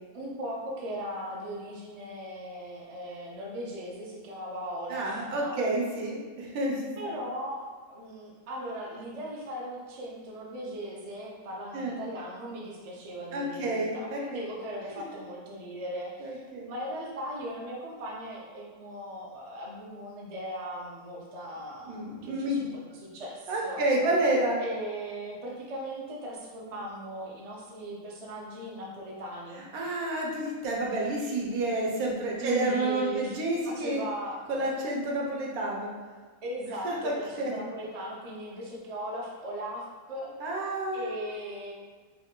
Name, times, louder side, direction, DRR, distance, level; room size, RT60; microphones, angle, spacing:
voice 1, 0.1-5.6 7.0-23.8 24.6-29.6 31.0-31.1 32.4-33.4 33.6-34.4 36.4-40.3 40.6-40.7 40.9-41.7, equal, 55° right, -4 dB, 0.4 m, -38 dB
voice 2, 4.9-7.1 11.7-12.0 13.3-14.4 16.2-16.7 21.8-22.7 23.5-24.6 29.7-34.0 34.5-35.9 36.8-37.6 40.4-41.1, right 1 dB, 80° right, -2 dB, 1.2 m, -29 dB
3.4 x 2.3 x 3.6 m, 1.5 s
omnidirectional pair, 1.5 m